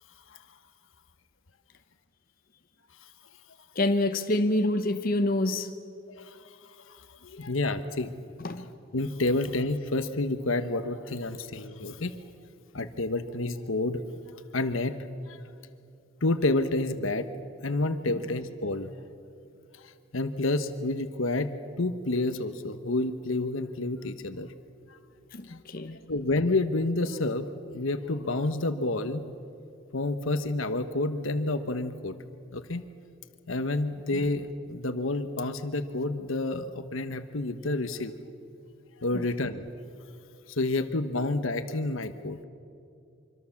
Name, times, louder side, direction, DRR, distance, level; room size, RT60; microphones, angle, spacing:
voice 1, 3.7-5.7 8.4-8.7 18.1-18.3 25.3-26.0 34.1-34.2 39.1-39.3, left 1 dB, 45° left, 0.9 m, -27 dB
voice 2, 6.9-8.1 8.9-12.2 12.7-14.0 14.5-15.4 16.2-17.3 17.6-18.9 20.1-21.5 21.8-24.5 25.5-25.6 26.1-27.5 27.7-29.3 29.9-32.1 32.5-32.8 33.5-38.1 39.0-39.6 40.5-42.4, left 2 dB, 80° left, 1.2 m, -29 dB
25.0 x 25.0 x 7.3 m
head